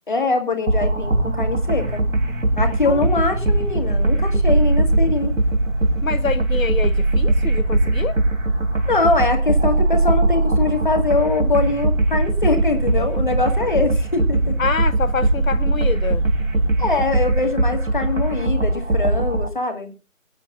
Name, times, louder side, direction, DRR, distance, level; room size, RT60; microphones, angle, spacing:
voice 1, 0.1-2.1 2.6-5.3 8.9-14.6 16.8-19.9, left 3 dB, 35° left, 2.1 m, -23 dB
sound 1, 0.7-19.5, right 2 dB, 75° right, 3.1 m, -21 dB
sound 2, 1.0-17.4, right 2 dB, 20° right, 2.6 m, -25 dB
voice 2, 6.0-8.2 14.6-16.2, left 5 dB, 75° left, 0.8 m, -26 dB
23.0 x 9.6 x 2.4 m
figure-of-eight pair, 165°, 41 cm